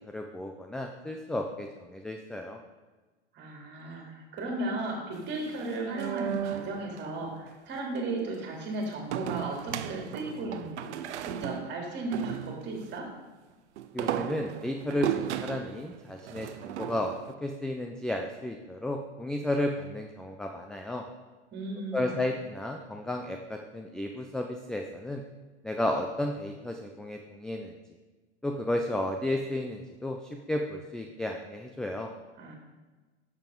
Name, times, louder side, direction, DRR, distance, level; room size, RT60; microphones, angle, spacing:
voice 1, 0.0-2.6 13.9-17.2 17.4-21.0 21.9-25.2 25.6-27.7 28.4-32.1, left 1 dB, ahead, 3 dB, 0.4 m, -33 dB
voice 2, 3.3-10.9 11.2-13.1 21.5-22.2 32.4-32.5, right 2 dB, 30° right, 0 dB, 3.0 m, -35 dB
sound 1, 5.2-7.1 9.1-12.9 13.8-17.3, right 10 dB, 80° right, 0.6 m, -35 dB
10.0 x 7.2 x 3.8 m, 1.3 s
hypercardioid pair, 115°, 34 cm